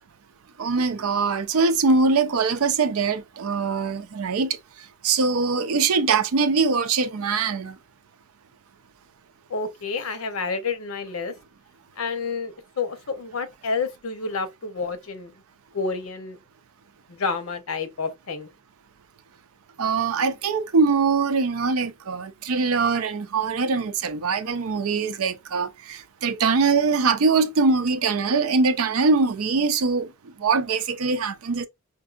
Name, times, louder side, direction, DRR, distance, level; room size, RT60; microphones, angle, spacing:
voice 1, 0.6-4.6 5.0-7.8 19.8-30.1 30.4-31.7, right 4 dB, 80° right, 0.5 m, -22 dB
voice 2, 9.5-11.3 12.0-15.3 15.7-16.4 17.1-18.5, left 4 dB, 75° left, 0.7 m, -29 dB
5.1 x 2.6 x 2.4 m
head